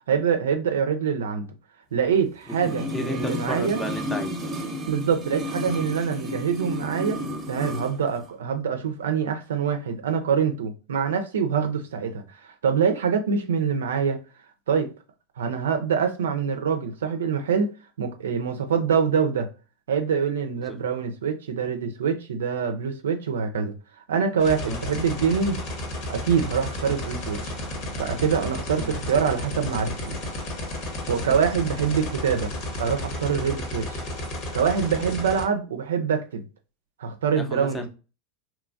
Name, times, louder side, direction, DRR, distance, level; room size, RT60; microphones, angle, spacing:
voice 1, 0.1-1.5 1.9-3.8 4.9-7.2 7.5-14.2 14.7-14.9 15.4-17.7 18.0-19.5 19.9-23.7 24.1-25.6 26.1-27.5 28.0-30.1 31.1-32.5 32.8-34.0 34.5-36.4 37.0-37.9, right 6 dB, 80° right, 0.5 m, -25 dB
sound 1, 2.4-7.9 8.2-8.3, equal, 25° right, 0.8 m, -32 dB
voice 2, 2.9-4.4 20.6-20.8 24.5-24.8 28.8-28.9 31.1-31.3 34.9-35.1 37.3-37.9, left 1 dB, 15° left, 0.6 m, -34 dB
sound 2, 24.4-35.4, left 1 dB, 55° left, 1.0 m, -32 dB
2.9 x 2.3 x 2.5 m
hypercardioid pair, 90°, 0 cm